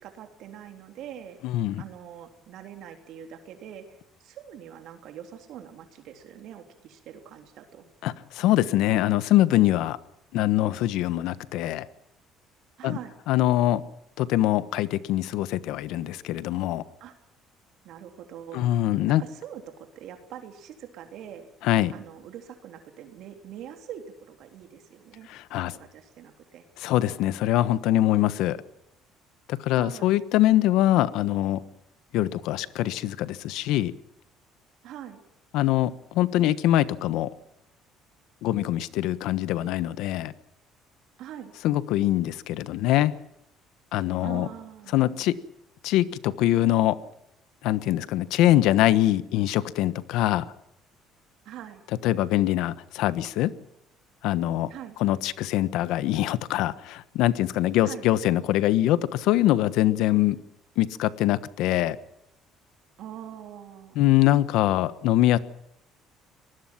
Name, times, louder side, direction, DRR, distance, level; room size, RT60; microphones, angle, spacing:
voice 1, 0.0-1.4 1.8-7.9 12.8-13.1 17.0-17.2 17.8-18.7 19.2-21.5 21.9-25.3 25.6-26.7 29.7-30.1 34.8-35.2 41.2-41.5 44.2-45.3 51.5-51.8 54.7-55.0 57.8-58.1 63.0-64.0, right 10 dB, 65° right, 5 dB, 3.3 m, -43 dB
voice 2, 1.4-1.8 8.0-10.0 10.3-11.9 12.8-13.0 13.3-13.8 14.2-16.8 18.5-19.2 21.6-21.9 25.3-25.7 26.8-28.6 29.5-31.6 32.1-33.9 35.5-37.3 38.4-40.3 41.6-43.1 43.9-44.5 44.9-45.4 45.8-47.0 47.6-50.4 52.0-53.5 54.2-54.7 55.0-60.4 60.8-62.0 63.9-65.4, left 14 dB, 75° left, 15 dB, 1.2 m, -23 dB
24.5 x 19.5 x 6.0 m, 0.80 s
cardioid pair, 140°, 0 cm